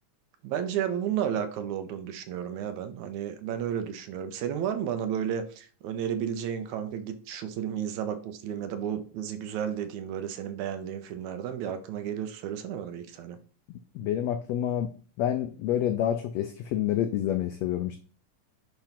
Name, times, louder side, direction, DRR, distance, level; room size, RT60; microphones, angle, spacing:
voice 1, 0.4-13.4, right 9 dB, 75° right, 9 dB, 1.9 m, -32 dB
voice 2, 14.0-14.9 15.2-18.0, left 10 dB, 90° left, 9 dB, 1.5 m, -28 dB
8.8 x 3.0 x 5.7 m, 0.39 s
omnidirectional pair, 3.6 m